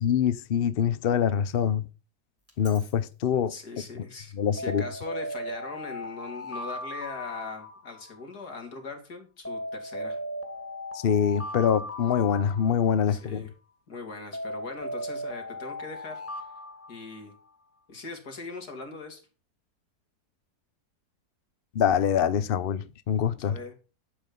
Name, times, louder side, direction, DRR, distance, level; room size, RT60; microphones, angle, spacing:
voice 1, 0.0-1.8 2.6-3.5 4.3-4.8 11.0-13.4 21.7-23.6, left 8 dB, 55° left, 0.7 m, -24 dB
Alarm, 2.5-2.9 4.6-8.3 9.5-13.2 14.3-17.5, left 1 dB, 10° left, 2.1 m, -37 dB
voice 2, 3.5-10.2 13.1-13.5 13.9-16.4 16.9-17.3 17.9-19.2 23.4-23.7, left 3 dB, 75° left, 3.2 m, -40 dB
11.5 x 7.8 x 5.2 m
omnidirectional pair, 1.7 m